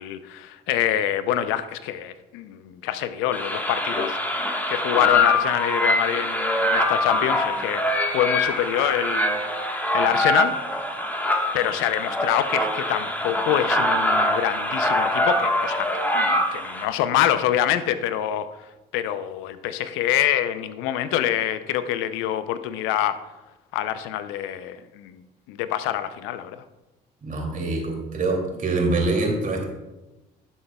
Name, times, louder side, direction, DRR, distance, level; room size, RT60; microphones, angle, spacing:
voice 1, 0.0-4.2 4.7-9.4 9.9-10.5 11.5-18.5 18.9-23.2 23.7-25.2 25.5-26.6, left 11 dB, 75° left, 12 dB, 0.6 m, -25 dB
sound 1, 3.3-16.8, left 1 dB, 10° left, 1.4 m, -24 dB
voice 2, 27.2-29.6, right 2 dB, 40° right, 0 dB, 2.7 m, -24 dB
12.0 x 7.3 x 2.3 m, 1.1 s
hypercardioid pair, 60°, 20 cm